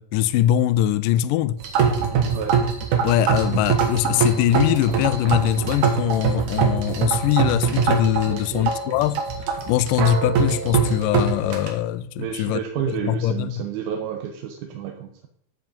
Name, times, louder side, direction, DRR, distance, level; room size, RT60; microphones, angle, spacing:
voice 1, 0.0-1.6 3.0-9.2 9.7-12.6 13.1-13.5, left 12 dB, 80° left, 2.0 m, -22 dB
sound 1, 1.6-11.7, right 6 dB, 60° right, 2.8 m, -23 dB
voice 2, 8.3-8.7 12.2-15.3, right 8 dB, 85° right, 2.8 m, -30 dB
14.5 x 5.3 x 5.3 m
omnidirectional pair, 4.3 m